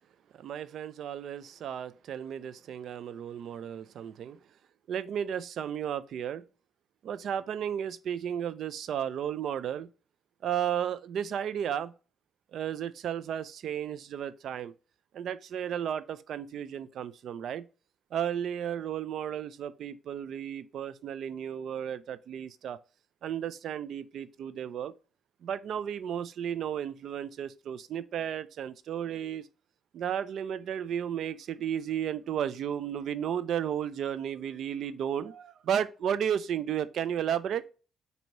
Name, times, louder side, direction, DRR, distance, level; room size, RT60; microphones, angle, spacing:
voice 1, 0.4-4.4 4.9-6.4 7.0-9.9 10.4-11.9 12.5-14.7 15.1-17.6 18.1-22.8 23.2-24.9 25.4-29.5 29.9-37.6, right 9 dB, 70° right, 0.4 m, -33 dB
4.6 x 2.7 x 4.0 m
cardioid pair, 90°, 0 cm